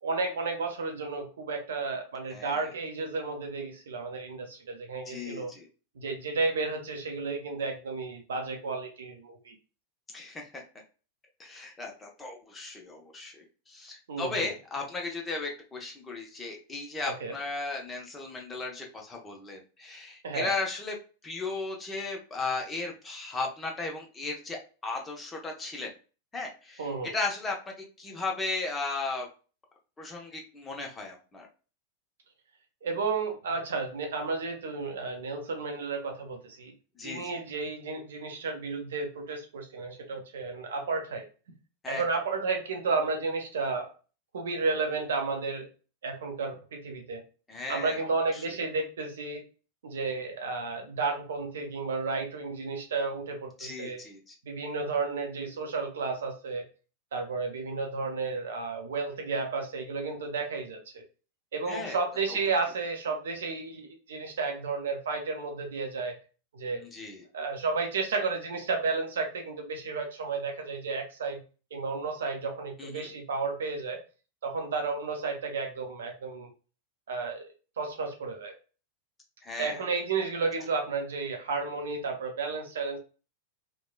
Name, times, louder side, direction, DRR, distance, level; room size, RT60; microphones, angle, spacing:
voice 1, 0.0-5.5 6.0-9.6 14.1-14.5 17.1-17.3 20.2-20.5 26.8-27.1 32.8-36.7 37.0-41.2 41.9-43.9 44.3-45.7 46.0-47.2 47.7-49.4 49.8-54.0 54.4-56.6 57.1-61.0 61.5-66.1 66.5-66.8 67.3-71.4 71.7-74.0 74.4-76.5 77.1-77.5 77.8-78.5 79.6-83.0, right 4 dB, 65° right, 4 dB, 0.6 m, -32 dB
voice 2, 2.3-2.6 5.1-5.7 10.1-10.6 11.4-21.0 21.2-25.9 26.3-29.3 30.0-31.5 37.0-37.4 41.8-42.0 47.5-48.4 53.6-54.3 61.7-62.0 66.8-67.2 72.8-73.1 79.4-79.8, left 3 dB, 15° left, 1 dB, 0.7 m, -36 dB
3.0 x 2.1 x 2.2 m, 0.35 s
figure-of-eight pair, 90°, 0 cm